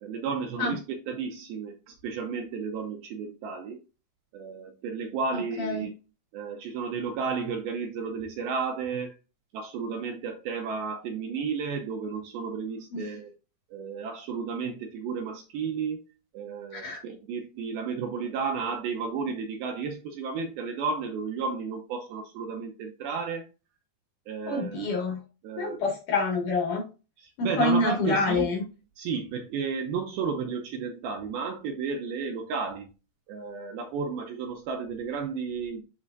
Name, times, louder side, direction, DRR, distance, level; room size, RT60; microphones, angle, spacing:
voice 1, 0.0-3.8 4.3-5.9 6.3-9.1 9.5-13.3 13.7-16.0 16.3-23.4 24.3-24.8 25.4-25.8 27.2-28.5 29.0-32.9 33.3-35.8, right 5 dB, 75° right, 2.4 m, -33 dB
voice 2, 5.3-5.9 12.9-13.1 16.7-17.0 24.5-25.2 25.6-26.9 27.4-28.6, left 3 dB, 55° left, 3.0 m, -27 dB
10.5 x 3.7 x 2.5 m
omnidirectional pair, 4.9 m